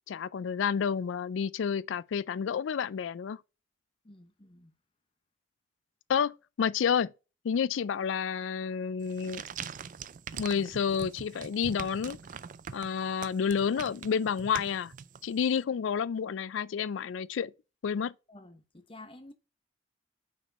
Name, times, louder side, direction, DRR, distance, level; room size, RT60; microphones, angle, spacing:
voice 1, 0.1-3.4 6.1-7.1 7.4-9.4 10.4-12.2 12.7-14.9 15.2-17.5 17.8-18.1, left 7 dB, 75° left, 0.3 m, -30 dB
voice 2, 4.0-4.7 18.3-19.3, left 2 dB, 25° left, 0.9 m, -51 dB
sound 1, 9.0-15.6, right 7 dB, 40° right, 0.4 m, -43 dB
6.0 x 4.4 x 4.1 m
head